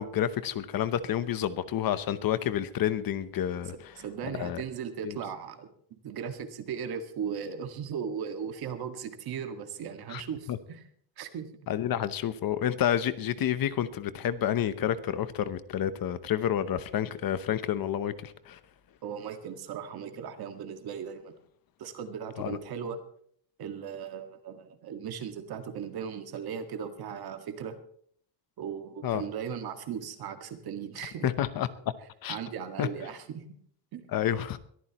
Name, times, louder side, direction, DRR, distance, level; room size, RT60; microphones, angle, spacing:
voice 1, 0.0-3.7 4.3-4.6 5.0-5.2 10.1-10.2 10.5-10.6 11.7-18.6 22.4-22.6 29.0-29.2 31.2-31.7 32.2-32.4 32.8-32.9 34.1-34.6, left 10 dB, 50° left, 13 dB, 0.9 m, -29 dB
voice 2, 4.0-10.8 11.2-11.5 19.0-21.3 21.8-23.0 23.6-27.8 28.6-31.3 32.3-33.4 33.9-34.0, right 7 dB, 55° right, 7 dB, 1.9 m, -37 dB
22.5 x 14.0 x 3.0 m, 0.62 s
cardioid pair, 175°, 45 cm